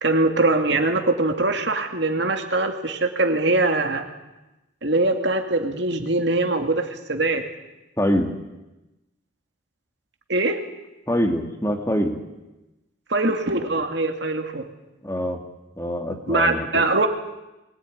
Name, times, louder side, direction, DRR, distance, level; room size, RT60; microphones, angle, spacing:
voice 1, 0.0-4.1 4.8-7.4 10.3-10.6 13.1-14.6 16.3-17.1, right 2 dB, 60° right, 5 dB, 2.4 m, -22 dB
voice 2, 8.0-8.3 11.1-12.2 15.0-15.4 15.8-16.8, equal, 15° left, 4 dB, 2.1 m, -24 dB
23.5 x 19.0 x 9.8 m, 1.0 s
head